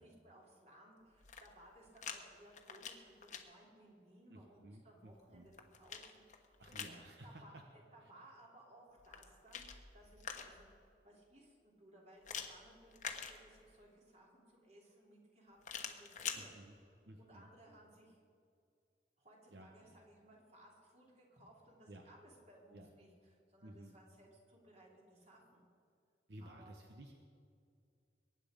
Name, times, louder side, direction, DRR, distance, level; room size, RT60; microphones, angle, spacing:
voice 1, 0.0-5.5 5.8-6.8 7.2-7.5 7.9-16.5 16.9-18.2 19.2-25.6 26.4-26.8, right 1 dB, 40° right, -2 dB, 3.1 m, -62 dB
sound 1, 1.1-2.2 2.5-3.4 5.1-7.0 9.0-10.7 12.2-13.8 15.6-16.4, left 7 dB, 45° left, 1.1 m, -46 dB
voice 2, 4.3-5.5 6.6-7.6 8.0-8.1 16.3-16.8 17.1-17.5 19.5-19.7 21.9-22.0 22.7-22.9 23.6-23.9 26.3-27.2, right 1 dB, 70° right, 3 dB, 1.0 m, -55 dB
22.5 x 9.5 x 5.1 m, 2.4 s
head